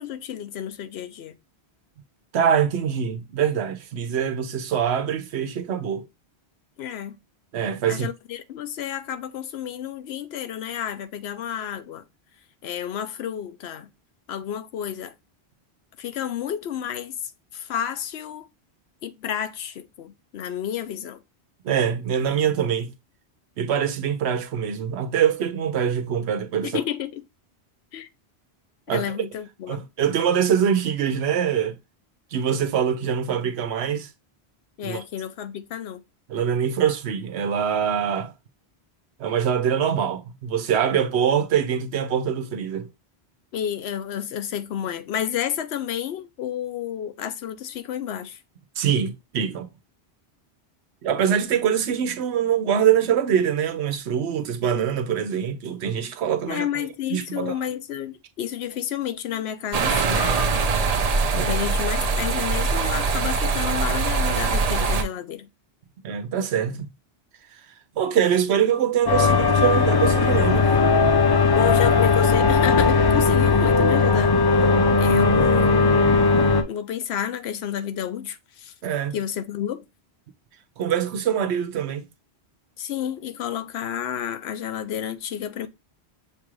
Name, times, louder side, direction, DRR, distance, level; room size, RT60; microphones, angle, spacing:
voice 1, 0.0-1.3 6.8-7.2 7.9-12.0 12.6-13.9 14.3-15.1 16.0-18.5 19.0-21.2 26.6-27.2 27.9-28.1 28.9-29.8 34.8-36.0 43.5-48.4 56.5-60.6 61.4-65.5 71.6-74.4 75.0-76.3 76.7-78.7 79.1-79.9 82.8-85.7, left 9 dB, 75° left, 0.8 m, -30 dB
voice 2, 2.3-6.1 7.5-8.1 21.6-22.9 23.6-26.8 28.9-29.3 29.7-31.8 32.3-34.1 34.8-35.0 36.3-38.3 39.2-42.9 48.8-49.7 51.0-56.7 57.1-57.5 61.3-61.5 66.0-66.8 68.0-70.7 78.8-79.1 80.8-82.0, right 8 dB, 80° right, 0.9 m, -24 dB
sound 1, 59.7-65.0, right 4 dB, 45° right, 0.5 m, -23 dB
sound 2, 69.1-76.6, left 4 dB, 40° left, 0.3 m, -18 dB
6.6 x 2.5 x 3.0 m
omnidirectional pair, 1.1 m